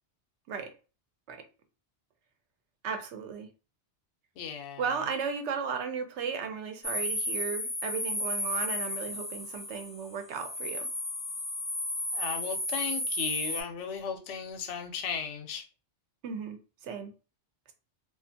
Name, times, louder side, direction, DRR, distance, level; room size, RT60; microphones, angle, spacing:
voice 1, 2.8-3.5 4.8-10.9 16.2-16.6 16.8-17.1, right 6 dB, 80° right, 0.9 m, -35 dB
voice 2, 4.4-5.0 12.1-15.6, left 7 dB, 85° left, 0.9 m, -36 dB
sound 1, 6.8-13.6, left 1 dB, 20° left, 0.5 m, -33 dB
2.5 x 2.4 x 2.5 m
omnidirectional pair, 1.2 m